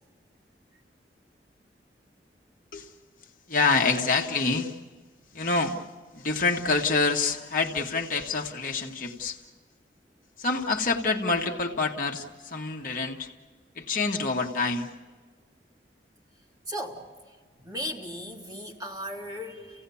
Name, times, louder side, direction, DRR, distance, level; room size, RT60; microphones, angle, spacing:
voice 1, 3.5-4.7 5.3-5.8 6.1-9.4 10.4-13.3 13.7-14.9, left 4 dB, 50° left, 2 dB, 1.4 m, -26 dB
voice 2, 16.7-17.1 17.6-19.8, equal, 20° right, -3 dB, 2.9 m, -36 dB
29.5 x 17.0 x 7.1 m, 1.5 s
head